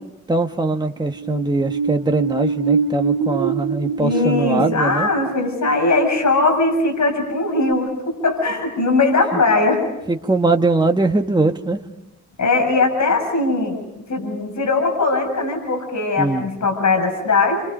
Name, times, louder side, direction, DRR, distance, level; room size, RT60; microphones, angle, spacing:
voice 1, 0.3-5.1 10.1-11.8 16.2-16.5, right 2 dB, 15° right, 4 dB, 1.4 m, -21 dB
sound 1, 1.0-7.3 7.7-7.8, right 5 dB, 85° right, 1.1 m, -25 dB
voice 2, 4.0-9.8 12.4-13.8 14.1-17.6, left 3 dB, 70° left, 4 dB, 7.1 m, -19 dB
29.5 x 26.5 x 5.5 m, 0.92 s
wide cardioid pair, 100°, 30 cm